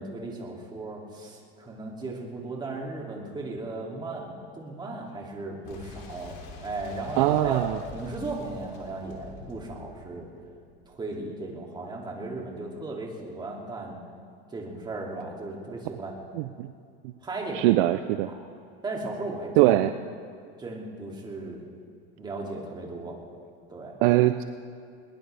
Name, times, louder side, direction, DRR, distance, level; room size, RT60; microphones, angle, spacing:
voice 1, 0.0-7.6 7.9-10.3 10.9-14.0 14.5-16.1 17.2-17.7 18.3-18.4 18.8-19.8 20.6-21.7 22.1-23.2 23.7-23.9, right 2 dB, 15° right, -1 dB, 2.6 m, -36 dB
Boom, 5.6-11.2, left 3 dB, 55° left, 3.4 m, -45 dB
voice 2, 7.2-7.8 16.3-16.7 17.5-18.3 19.6-19.9 24.0-24.4, right 15 dB, 55° right, 10 dB, 0.6 m, -21 dB
21.0 x 20.0 x 3.4 m, 2.4 s
supercardioid pair, 145°, 30 cm